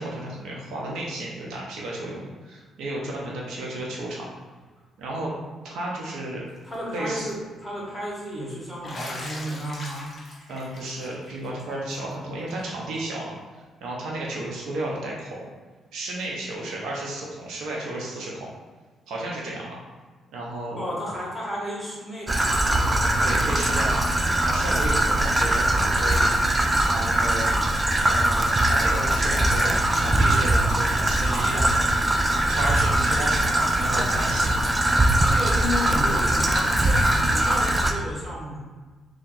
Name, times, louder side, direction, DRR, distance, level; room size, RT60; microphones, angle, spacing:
voice 1, 0.0-4.3 5.0-5.3 5.6-6.4 6.9-7.3 10.5-15.5 15.9-18.5 19.1-19.8 20.3-20.9 23.2-24.1 24.4-26.3 26.8-27.5 28.1-31.8 32.5-34.6 36.8-37.0, right 1 dB, 80° right, -3 dB, 0.9 m, -33 dB
Bathtub (filling or washing), 6.6-7.0 7.3-7.4 8.8-12.1 12.5-12.6 12.9-13.0 14.4-14.5 16.2-16.3, left 1 dB, 25° left, 1.1 m, -40 dB
voice 2, 6.6-10.1 20.8-23.3 35.2-38.6, equal, ahead, -6 dB, 1.5 m, -33 dB
Traffic noise roadway noise / Trickle dribble, 22.3-37.9, right 1 dB, 15° right, 0.4 m, -21 dB
3.3 x 2.9 x 3.9 m, 1.4 s
cardioid pair, 90°, 0 cm